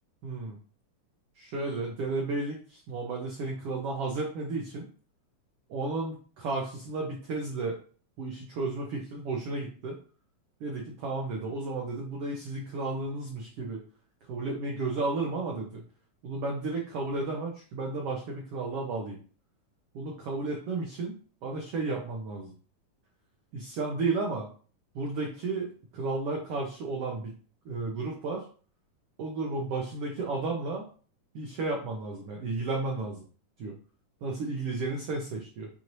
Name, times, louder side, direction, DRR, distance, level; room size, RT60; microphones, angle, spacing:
voice 1, 0.2-0.6 1.4-4.9 5.7-7.8 8.2-10.0 10.6-13.8 14.3-15.8 16.2-19.2 19.9-21.1 21.4-22.5 23.5-24.5 24.9-27.3 27.6-28.4 29.2-30.9 31.3-33.2 33.6-33.7 34.2-35.7, right 3 dB, 85° right, 0 dB, 1.3 m, -33 dB
6.1 x 2.7 x 3.0 m, 0.40 s
omnidirectional pair, 3.6 m